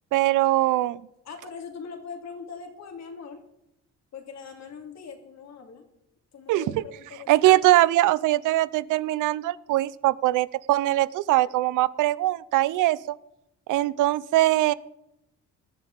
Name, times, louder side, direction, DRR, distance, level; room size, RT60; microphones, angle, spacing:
voice 1, 0.1-1.0 6.5-6.8 7.3-13.2 13.7-14.7, right 16 dB, 85° right, 19 dB, 0.6 m, -22 dB
voice 2, 1.2-3.4 4.1-5.9 6.3-7.5, left 5 dB, 60° left, 3 dB, 2.9 m, -41 dB
18.0 x 12.0 x 4.0 m, 0.83 s
cardioid pair, 90°, 30 cm